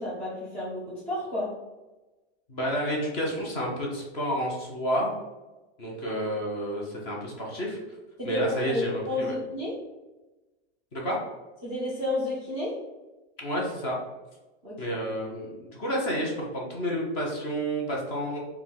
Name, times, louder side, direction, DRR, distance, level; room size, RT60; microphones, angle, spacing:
voice 1, 0.0-1.5 8.2-9.7 11.6-12.7 14.6-15.0, left 2 dB, 5° left, -10 dB, 0.3 m, -31 dB
voice 2, 2.5-5.1 5.8-7.8 8.2-9.3 10.9-11.2 13.4-14.0 14.8-18.4, equal, 25° left, -2 dB, 0.7 m, -30 dB
4.4 x 2.3 x 3.7 m, 1.1 s
supercardioid pair, 180°, 33 cm